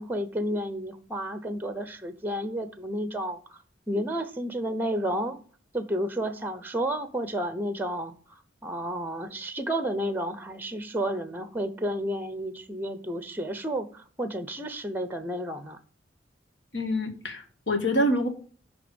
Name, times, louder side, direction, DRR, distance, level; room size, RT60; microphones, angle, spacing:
voice 1, 0.0-5.4 5.7-15.8, right 1 dB, 10° right, 0.7 m, -31 dB
voice 2, 16.7-18.3, equal, 70° left, 1.7 m, -26 dB
10.5 x 3.5 x 6.9 m
head